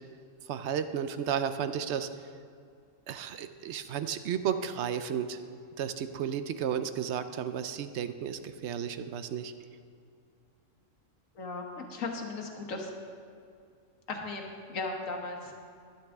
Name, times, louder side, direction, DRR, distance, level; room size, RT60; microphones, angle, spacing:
voice 1, 0.5-2.1 3.1-5.4 5.8-9.5, right 8 dB, 65° right, 10 dB, 0.8 m, -33 dB
voice 2, 11.4-12.9 14.1-15.6, left 3 dB, 80° left, 2 dB, 1.6 m, -37 dB
12.0 x 11.5 x 3.5 m, 2.4 s
omnidirectional pair, 1.4 m